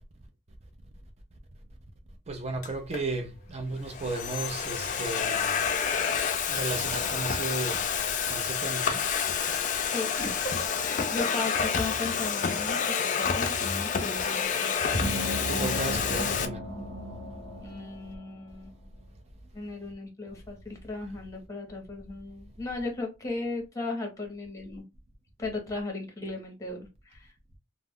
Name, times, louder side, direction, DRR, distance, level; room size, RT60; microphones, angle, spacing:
voice 1, 2.3-5.6 6.5-7.9 8.3-9.1 9.5-9.7 15.5-16.6, right 2 dB, 35° right, 0.5 m, -34 dB
Domestic sounds home sounds, 2.6-3.0 3.7-16.5, left 6 dB, 40° left, 0.3 m, -29 dB
voice 2, 9.8-14.7 17.6-18.7 19.5-24.9 25.4-27.6, left 2 dB, 15° left, 0.8 m, -36 dB
sound 1, 14.9-18.5, left 1 dB, 55° right, 0.9 m, -34 dB
2.3 x 2.0 x 3.5 m
head